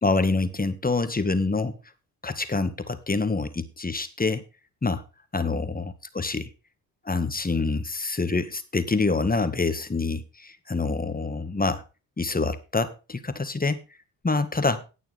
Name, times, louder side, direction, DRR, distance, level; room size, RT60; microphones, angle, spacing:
voice 1, 0.0-1.8 2.2-4.4 4.8-5.0 5.3-6.5 7.1-11.8 12.2-13.8 14.2-14.9, left 3 dB, 20° left, 10 dB, 1.8 m, -26 dB
18.0 x 6.6 x 3.5 m, 0.30 s
supercardioid pair, 65°, 41 cm